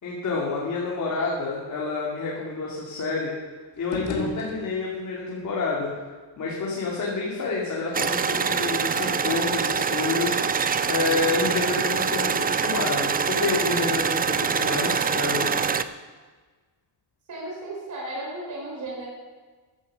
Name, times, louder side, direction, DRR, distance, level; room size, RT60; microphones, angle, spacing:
voice 1, 0.0-3.3 3.8-5.9 6.4-15.5, left 4 dB, 40° left, -4 dB, 2.6 m, -28 dB
sound 1, 3.7-5.2, left 4 dB, 70° left, 2.4 m, -34 dB
sound 2, 7.9-15.8, right 6 dB, 20° right, 0.3 m, -25 dB
voice 2, 17.3-19.1, right 1 dB, 40° right, -3 dB, 4.9 m, -34 dB
15.0 x 11.0 x 6.4 m, 1.4 s
cardioid pair, 170°, 46 cm